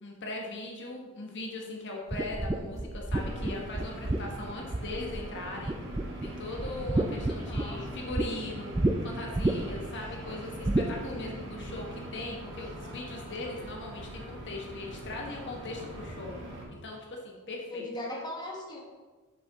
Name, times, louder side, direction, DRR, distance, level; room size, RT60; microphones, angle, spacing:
voice 1, 0.0-5.7 6.2-8.7 9.0-16.4 16.7-17.9, left 2 dB, 55° left, -1 dB, 1.3 m, -39 dB
sound 1, 2.1-5.3 5.7-6.3 6.6-8.3 8.7-8.9 9.3-9.9 10.6-10.9, right 2 dB, 15° right, 0.4 m, -29 dB
sound 2, 3.1-16.6, right 1 dB, 60° right, 2.0 m, -42 dB
voice 2, 17.7-18.8, left 1 dB, 20° left, -3 dB, 1.3 m, -38 dB
7.7 x 6.7 x 3.5 m, 1.4 s
head